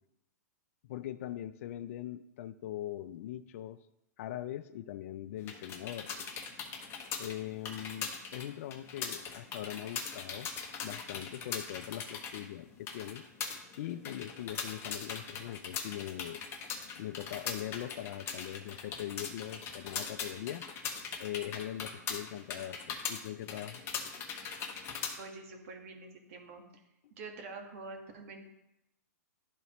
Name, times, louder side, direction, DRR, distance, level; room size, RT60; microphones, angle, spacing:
voice 1, 0.9-3.8 4.2-6.1 7.2-10.5 10.8-13.2 13.8-16.4 17.0-20.7 21.2-23.8, left 12 dB, 55° left, 14 dB, 0.4 m, -41 dB
sound 1, 5.4-25.2, left 6 dB, 25° left, 0.9 m, -41 dB
voice 2, 25.2-26.8 27.1-28.4, right 3 dB, 55° right, 3 dB, 1.6 m, -46 dB
12.0 x 4.0 x 3.0 m, 0.87 s
hypercardioid pair, 125°, 9 cm